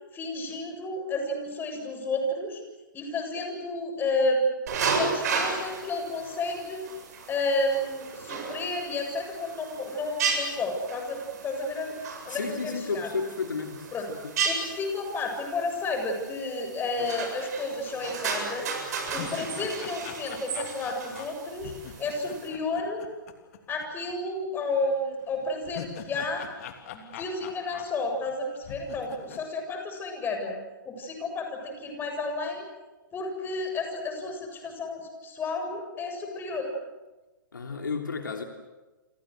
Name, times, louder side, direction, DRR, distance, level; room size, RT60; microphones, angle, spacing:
voice 1, 0.1-2.6 2.9-4.4 4.9-6.8 7.3-11.9 12.3-13.1 13.9-14.1 14.4-18.8 19.1-21.7 22.0-23.0 23.7-26.4 26.9-30.6 30.9-32.6 33.1-36.7, left 2 dB, 20° left, 4 dB, 7.4 m, -31 dB
sound 1, 4.7-22.5, right 5 dB, 55° right, 7.7 m, -34 dB
voice 2, 12.3-14.3 37.5-38.4, left 4 dB, 75° left, 4 dB, 3.2 m, -32 dB
sound 2, 18.2-18.3 18.8-23.8 24.1-24.2 25.4-28.3 28.6-29.4, left 9 dB, 50° left, 3.2 m, -43 dB
29.5 x 26.5 x 6.5 m, 1.2 s
figure-of-eight pair, 115°, 11 cm